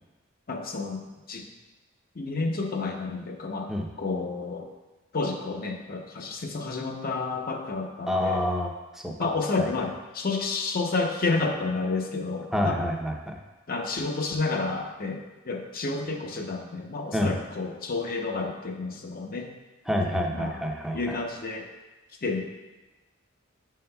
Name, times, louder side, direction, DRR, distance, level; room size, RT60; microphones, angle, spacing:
voice 1, 0.5-1.4 2.1-3.7 4.0-4.7 5.1-8.4 9.2-12.8 13.7-19.5 20.3-20.6 20.9-21.7 22.2-22.4, left 3 dB, 45° left, 3 dB, 0.7 m, -30 dB
voice 2, 8.1-9.3 9.6-9.7 12.5-13.4 17.1-17.3 19.9-21.2, left 1 dB, ahead, 1 dB, 0.6 m, -28 dB
9.5 x 5.5 x 2.2 m, 1.1 s
head